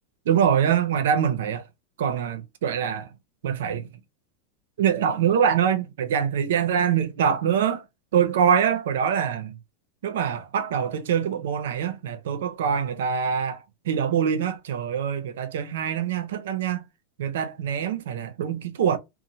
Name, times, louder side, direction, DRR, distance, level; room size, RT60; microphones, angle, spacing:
voice 1, 0.3-1.6 2.0-3.1 3.4-3.9 4.8-7.8 8.1-9.6 10.0-16.8 17.2-19.0, right 8 dB, 85° right, 0.5 m, -24 dB
2.7 x 2.0 x 3.0 m
supercardioid pair, 155°, 0 cm